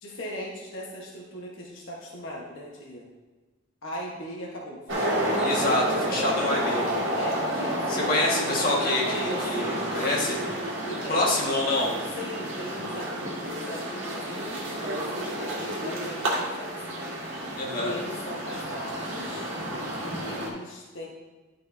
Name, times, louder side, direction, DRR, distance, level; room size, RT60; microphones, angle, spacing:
voice 1, 0.0-3.1 3.8-5.3 7.1-8.5 9.0-9.7 10.8-11.4 12.2-17.0 17.8-19.5 20.0-21.1, equal, 85° left, -3 dB, 1.4 m, -39 dB
sound 1, 4.9-20.5, equal, 85° right, 1.8 m, -30 dB
voice 2, 5.4-6.8 7.9-10.4 11.1-12.0 17.5-18.0, left 2 dB, 50° left, -4 dB, 1.8 m, -27 dB
11.5 x 5.1 x 2.8 m, 1.3 s
head